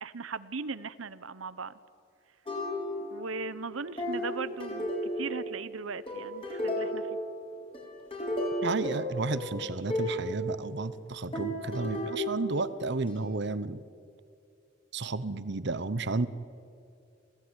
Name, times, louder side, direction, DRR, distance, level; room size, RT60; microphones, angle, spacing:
voice 1, 0.0-1.7 3.1-7.1, right 4 dB, 85° right, 15 dB, 0.9 m, -38 dB
sound 1, 2.5-3.3 4.0-5.6 6.1-7.3 7.7-10.3 11.3-13.1, equal, 30° left, 6.8 m, -33 dB
voice 2, 8.6-13.8 14.9-16.3, right 3 dB, 60° right, 15 dB, 0.9 m, -32 dB
27.5 x 17.0 x 9.8 m, 2.5 s
head